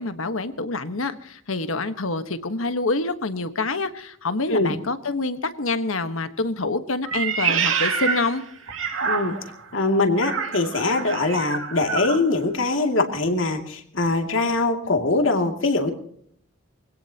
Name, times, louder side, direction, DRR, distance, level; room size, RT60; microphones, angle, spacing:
voice 1, 0.0-8.4, left 3 dB, 90° left, 10 dB, 1.4 m, -26 dB
Meow, 7.0-9.6 10.2-12.2, right 6 dB, 80° right, 2.3 m, -26 dB
voice 2, 9.0-9.4 9.7-15.9, left 2 dB, 70° left, 4 dB, 2.6 m, -22 dB
24.0 x 17.5 x 2.9 m, 0.63 s
head